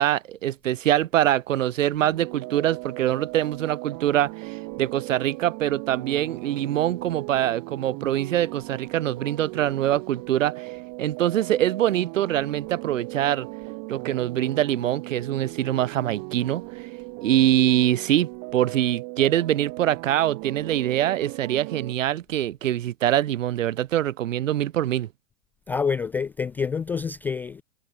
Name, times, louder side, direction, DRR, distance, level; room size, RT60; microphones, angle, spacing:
voice 1, 0.0-10.7 11.0-13.5 13.9-16.6 17.2-25.1, right 12 dB, 60° right, 1.7 m, -24 dB
sound 1, 2.0-21.9, right 36 dB, 30° right, 1.1 m, -38 dB
voice 2, 25.7-27.6, left 5 dB, 5° left, 0.4 m, -27 dB
figure-of-eight pair, 105°, 44 cm